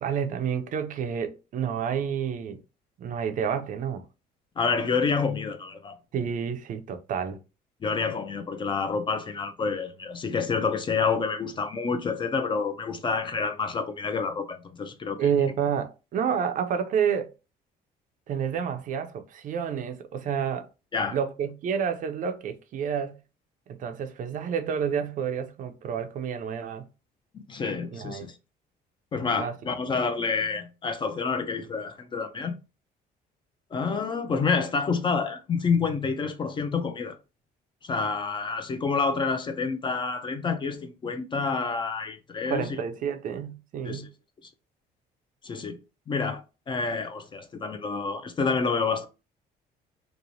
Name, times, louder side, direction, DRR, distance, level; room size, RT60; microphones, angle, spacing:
voice 1, 0.0-2.6 3.0-4.0 6.1-7.4 15.2-17.3 18.3-20.7 21.1-23.2 23.7-26.9 27.9-28.3 29.4-29.5 42.5-44.1, right 7 dB, 50° right, 0.4 m, -29 dB
voice 2, 4.6-6.0 7.8-15.3 20.9-21.2 27.5-28.4 29.1-32.5 33.7-37.2 37.8-42.7 43.8-44.1 45.4-45.8 46.1-49.1, left 5 dB, 30° left, 0.4 m, -28 dB
3.0 x 2.1 x 2.6 m
cardioid pair, 110°, 17 cm